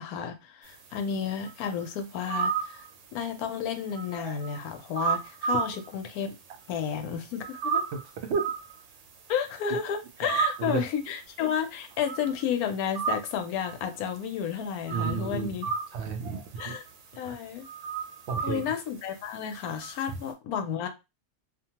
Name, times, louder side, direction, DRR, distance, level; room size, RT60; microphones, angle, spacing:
voice 1, 0.0-2.8 3.1-6.3 6.7-7.8 9.3-15.7 16.6-16.8 17.2-17.7 18.4-20.9, left 8 dB, 80° left, 1.1 m, -32 dB
sound 1, 0.8-6.3 6.5-20.3, right 6 dB, 85° right, 1.1 m, -34 dB
voice 2, 7.9-8.4 10.2-10.3 10.6-10.8 14.9-15.5 15.9-16.7 17.2-17.4 18.3-18.6, right 5 dB, 70° right, 0.6 m, -32 dB
2.6 x 2.2 x 2.8 m
omnidirectional pair, 1.6 m